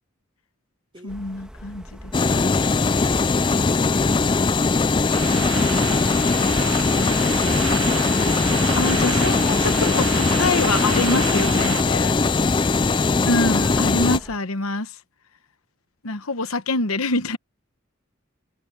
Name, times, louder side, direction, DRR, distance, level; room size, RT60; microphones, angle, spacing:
voice 1, 1.0-2.6 8.8-12.1 13.2-15.0 16.0-17.4, left 3 dB, 80° left, 1.1 m, -26 dB
sound 1, 1.1-14.4, equal, 5° right, 2.3 m, -42 dB
sound 2, 2.1-14.2, left 4 dB, 20° left, 0.4 m, -20 dB
voice 2, 3.5-5.1, right 1 dB, 25° right, 3.8 m, -46 dB
sound 3, 5.1-11.8, right 7 dB, 65° right, 1.2 m, -30 dB
head